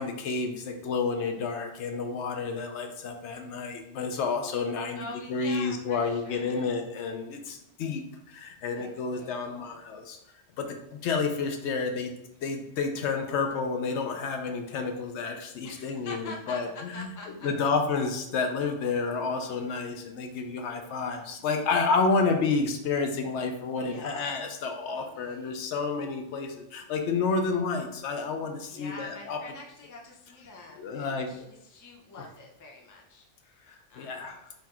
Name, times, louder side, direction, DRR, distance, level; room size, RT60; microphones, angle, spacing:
voice 1, 0.0-5.0 5.3-8.0 8.3-10.2 10.6-12.1 12.4-17.1 17.4-29.4 30.8-31.3 33.7-34.5, left 4 dB, 70° left, 5 dB, 0.9 m, -30 dB
voice 2, 5.0-6.7 8.6-9.8 15.6-17.5 23.7-24.3 24.8-25.6 28.7-33.5 33.9-34.4, left 3 dB, 25° left, 0 dB, 0.4 m, -45 dB
4.2 x 2.7 x 4.2 m, 0.81 s
omnidirectional pair, 1.2 m